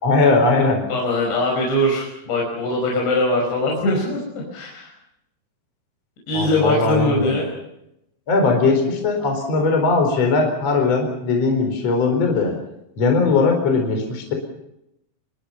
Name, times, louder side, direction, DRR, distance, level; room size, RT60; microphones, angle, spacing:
voice 1, 0.0-0.8 6.3-7.3 8.3-12.5 13.0-14.3, left 3 dB, 35° left, 3 dB, 5.1 m, -19 dB
voice 2, 0.9-4.2 4.5-4.9 6.3-7.5, left 1 dB, 70° left, -2 dB, 7.8 m, -21 dB
28.5 x 22.0 x 5.7 m, 0.83 s
omnidirectional pair, 5.4 m